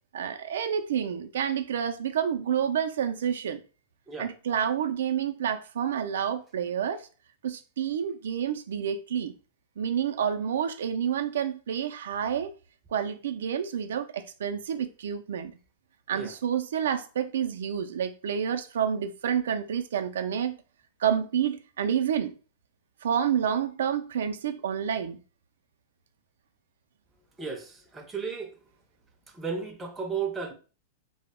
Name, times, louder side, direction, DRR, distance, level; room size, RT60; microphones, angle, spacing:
voice 1, 0.1-3.6 4.2-7.1 7.4-9.3 9.8-12.5 12.9-15.5 16.1-20.6 21.0-22.3 23.0-25.2, right 8 dB, 85° right, 0.3 m, -29 dB
voice 2, 27.4-28.6 29.3-30.5, right 5 dB, 10° right, 0.5 m, -34 dB
2.0 x 2.0 x 3.5 m
supercardioid pair, 150°, 0 cm